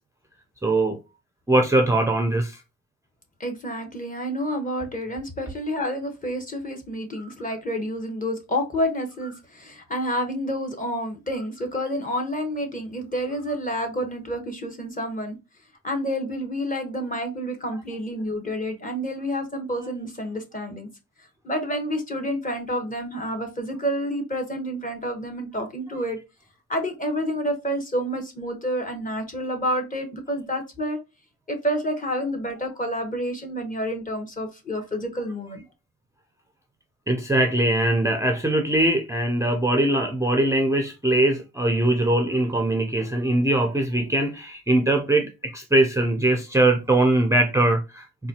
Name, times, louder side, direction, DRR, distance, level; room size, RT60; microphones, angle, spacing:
voice 1, 0.6-1.0 1.5-2.6 7.2-7.3 37.1-48.3, right 1 dB, 10° right, 0.5 m, -21 dB
voice 2, 3.4-15.4 15.8-20.9 21.4-26.2 26.7-31.0 31.5-35.6, equal, 25° left, 1.1 m, -29 dB
3.9 x 2.3 x 2.8 m
cardioid pair, 90°, 30 cm